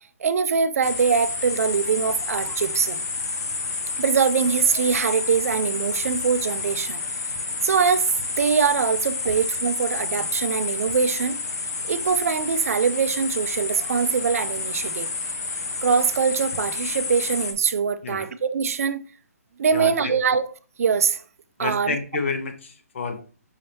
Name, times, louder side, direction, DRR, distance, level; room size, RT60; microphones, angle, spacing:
voice 1, 0.2-3.0 4.0-7.0 7.6-11.4 11.9-15.1 15.8-19.0 19.6-20.5 20.8-21.2 21.6-22.0, right 6 dB, 65° right, 0.4 m, -23 dB
sound 1, 0.8-17.5, left 3 dB, 85° left, 0.9 m, -30 dB
voice 2, 19.7-20.2 21.6-23.2, left 4 dB, 50° left, 0.8 m, -29 dB
5.5 x 2.7 x 3.3 m
hypercardioid pair, 155°, 8 cm